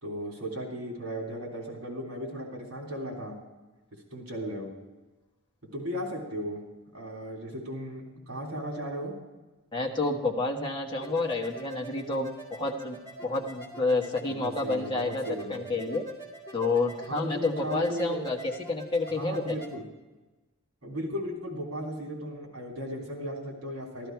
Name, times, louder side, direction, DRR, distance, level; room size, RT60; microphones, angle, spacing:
voice 1, 0.0-3.4 4.1-4.7 5.7-6.6 6.9-9.1 14.3-15.7 17.1-18.2 19.1-19.8 20.8-24.1, equal, 75° right, 0 dB, 3.2 m, -36 dB
voice 2, 9.7-16.0 16.5-19.5, left 3 dB, 20° left, 0 dB, 1.2 m, -29 dB
sound 1, 11.0-19.7, left 1 dB, 15° right, 3.0 m, -43 dB
13.5 x 13.5 x 4.6 m, 1.1 s
head